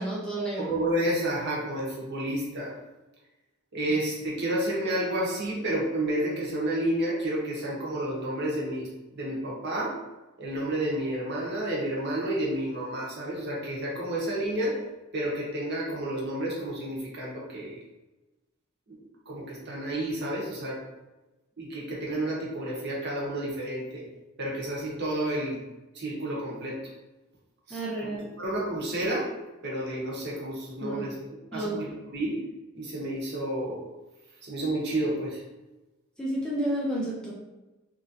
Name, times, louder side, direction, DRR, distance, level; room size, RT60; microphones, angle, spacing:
voice 1, 0.0-0.7 27.7-28.2 30.8-31.0 31.5-31.9 36.2-37.3, right 1 dB, 5° left, -5 dB, 0.4 m, -31 dB
voice 2, 0.6-2.7 3.7-8.9 9.1-10.0 10.4-14.7 15.1-17.7 19.3-20.8 21.6-24.0 24.4-25.6 25.9-26.8 27.7-27.8 28.1-29.3 29.6-31.1 31.5-32.4 32.7-33.9 34.4-35.4, right 1 dB, 50° right, -5 dB, 0.8 m, -30 dB
3.0 x 2.4 x 2.7 m, 1.1 s
head